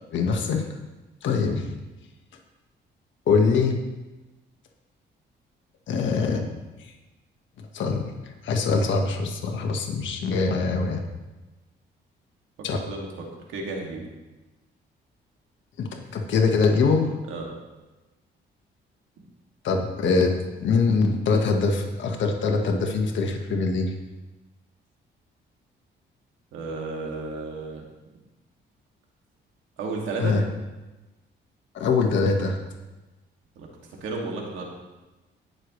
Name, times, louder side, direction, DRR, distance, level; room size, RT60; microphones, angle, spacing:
voice 1, 0.1-0.7 1.2-1.7 3.3-3.8 5.9-6.5 6.8-6.9 7.7-8.1 8.4-11.0 12.6-12.8 15.8-17.1 19.6-23.9 30.2-30.4 31.7-32.6, left 4 dB, 70° left, 3 dB, 1.6 m, -23 dB
voice 2, 12.7-13.1 13.5-14.1 17.3-17.5 26.5-27.8 29.8-30.4 33.6-33.7 34.0-34.7, right 3 dB, 85° right, -1 dB, 2.4 m, -32 dB
18.5 x 6.7 x 3.2 m, 1.1 s
cardioid pair, 90°, 20 cm